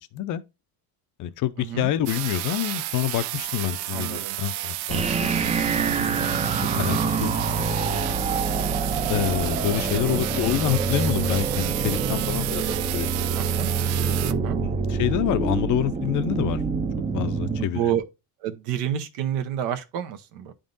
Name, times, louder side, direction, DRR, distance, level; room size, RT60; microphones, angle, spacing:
voice 1, 0.1-0.4 1.2-5.5 6.6-7.3 7.6-7.8 9.1-13.2 14.6-16.6 17.1-17.9, left 12 dB, 45° left, 0.5 m, -27 dB
voice 2, 1.6-1.9 3.9-4.4 6.5-6.8 9.9-10.2 13.4-13.7 14.3-14.6 17.7-18.0 18.4-20.5, right 10 dB, 90° right, 1.0 m, -29 dB
sound 1, 2.1-14.3, right 15 dB, 70° right, 0.5 m, -32 dB
sound 2, 4.9-17.7, right 5 dB, 15° right, 0.4 m, -26 dB
10.5 x 3.7 x 2.5 m
cardioid pair, 140°, 43 cm